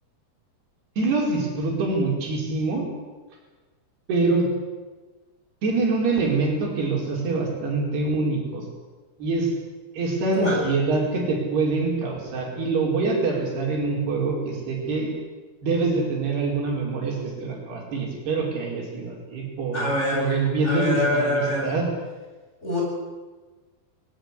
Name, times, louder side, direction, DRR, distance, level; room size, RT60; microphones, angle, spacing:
voice 1, 1.0-2.9 4.1-4.5 5.6-8.6 9.2-9.5 9.9-15.1 15.6-19.8 20.1-21.9, right 3 dB, 75° right, 0 dB, 6.8 m, -25 dB
voice 2, 10.3-10.6 19.7-20.3 20.6-21.7 22.6-22.8, left 1 dB, 15° left, -3 dB, 8.3 m, -24 dB
21.0 x 18.0 x 10.0 m, 1.3 s
omnidirectional pair, 4.6 m